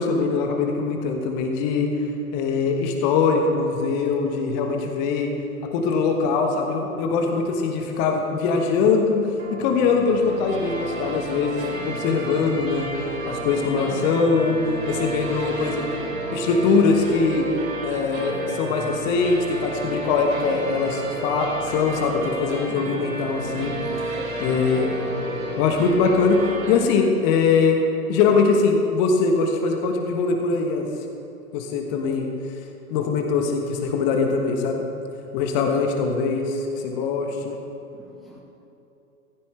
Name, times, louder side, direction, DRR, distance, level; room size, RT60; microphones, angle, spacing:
voice 1, 0.0-2.1 2.3-5.3 5.7-12.9 13.2-14.6 14.9-16.0 16.3-17.5 17.8-23.7 24.4-24.9 25.6-27.8 28.1-30.9 31.5-32.3 32.9-34.8 35.3-37.6, left 4 dB, 30° left, 3 dB, 1.3 m, -22 dB
sound 1, 9.4-26.9, right 2 dB, 65° right, 3.5 m, -31 dB
voice 2, 13.8-14.1 22.8-23.0 24.7-24.9 37.9-38.4, right 1 dB, ahead, -4 dB, 1.2 m, -45 dB
15.5 x 15.0 x 3.4 m, 3.0 s
figure-of-eight pair, 110°, 44 cm